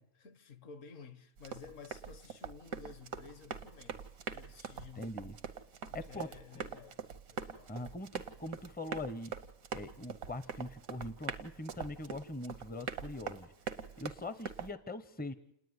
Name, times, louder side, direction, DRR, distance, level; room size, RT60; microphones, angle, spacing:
voice 1, 0.0-5.2 5.9-7.0 7.3-7.7, left 5 dB, 65° left, 1.3 m, -53 dB
Run, 1.4-14.7, right 6 dB, 85° right, 1.4 m, -44 dB
voice 2, 5.0-5.4 5.9-6.3 7.7-9.3 9.7-13.5 14.0-15.3, left 2 dB, 10° left, 0.4 m, -42 dB
29.0 x 10.0 x 9.5 m
omnidirectional pair, 1.4 m